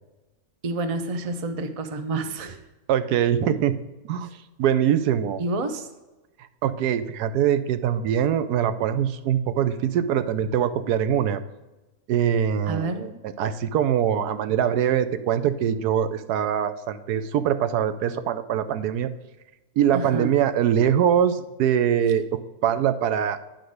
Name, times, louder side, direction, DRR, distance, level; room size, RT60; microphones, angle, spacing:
voice 1, 0.6-2.6 5.4-5.9 12.7-13.1 19.9-20.3, right 2 dB, 40° right, 8 dB, 0.5 m, -29 dB
voice 2, 2.9-3.7 4.0-4.3 4.6-5.4 6.6-11.4 12.1-19.1 19.8-23.4, right 9 dB, 80° right, 12 dB, 1.1 m, -23 dB
10.5 x 3.9 x 6.4 m, 1.1 s
omnidirectional pair, 1.7 m